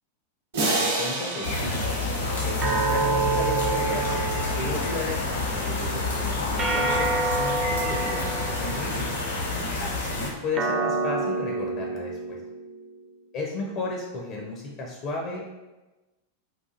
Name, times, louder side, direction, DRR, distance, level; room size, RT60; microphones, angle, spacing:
sound 1, 0.5-3.4, right 2 dB, 60° right, 0.8 m, -29 dB
voice 1, 0.8-1.8 2.4-4.1 4.6-9.1 9.8-12.4 13.3-15.4, left 3 dB, 40° left, -1 dB, 0.5 m, -34 dB
sound 2, 1.4-10.3, left 2 dB, 65° left, 0.8 m, -28 dB
sound 3, 2.6-5.2 6.6-9.1 10.5-13.2, right 3 dB, 25° right, 0.4 m, -28 dB
4.1 x 2.4 x 2.4 m, 1.1 s
figure-of-eight pair, 90°, 0 cm